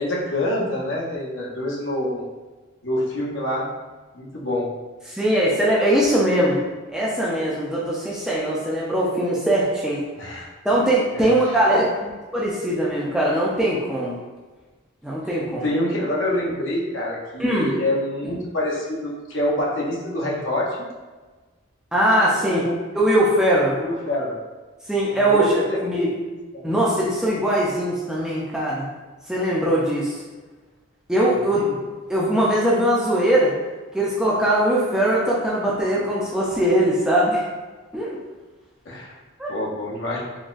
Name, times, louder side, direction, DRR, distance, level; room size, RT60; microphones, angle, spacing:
voice 1, 0.0-2.2 2.8-3.7 4.1-4.7 10.2-10.5 11.1-11.8 15.3-20.9 22.4-22.8 23.8-24.3 25.1-26.6 31.4-31.8 38.8-39.1 39.5-40.2, left 1 dB, 65° left, -4 dB, 0.7 m, -26 dB
voice 2, 5.1-6.6 6.9-10.0 10.6-11.8 12.3-14.2 15.0-15.7 17.4-17.8 21.9-22.6 22.9-23.8 24.9-25.5 25.8-26.1 26.6-28.9 29.3-30.2 31.1-31.7 32.1-33.5 33.9-37.4 37.9-38.2 39.4-39.5, right 1 dB, 5° right, -6 dB, 0.4 m, -21 dB
3.8 x 2.2 x 2.4 m, 1.3 s
head